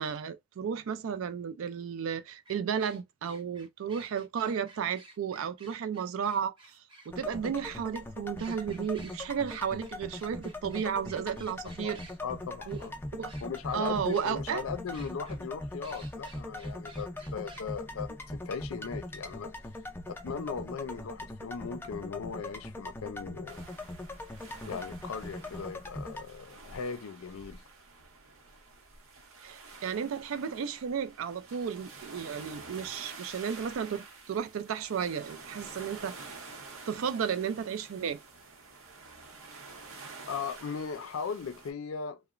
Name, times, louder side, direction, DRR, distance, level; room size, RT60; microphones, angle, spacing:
voice 1, 0.0-12.0 12.7-12.8 13.1-13.3 13.7-14.6 29.4-36.4 36.9-38.2, right 7 dB, 75° right, 0.4 m, -33 dB
sound 1, 2.5-7.8 8.4-12.2 12.7-12.9 13.3-13.8 14.1-14.6 14.9-15.4 15.8-17.6, right 2 dB, 25° right, 0.6 m, -54 dB
sound 2, 7.1-26.2, left 1 dB, 10° left, 0.4 m, -41 dB
voice 2, 11.8-13.0 13.4-19.5 20.1-23.6 24.7-27.6 40.3-42.2, left 6 dB, 85° left, 0.4 m, -38 dB
sound 3, 23.5-41.7, right 3 dB, 90° right, 0.8 m, -49 dB
2.8 x 2.1 x 2.4 m
head